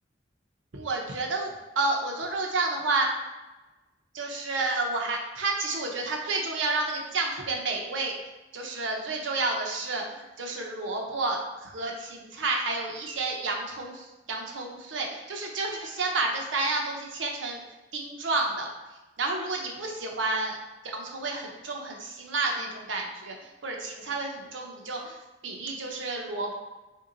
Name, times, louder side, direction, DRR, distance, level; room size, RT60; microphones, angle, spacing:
voice 1, 0.7-3.1 4.1-8.1 8.5-10.0 10.4-17.6 17.9-18.7 19.2-20.6 20.8-25.2 25.4-26.5, right 3 dB, 80° right, 1 dB, 0.7 m, -30 dB
3.6 x 2.7 x 3.8 m, 1.1 s
head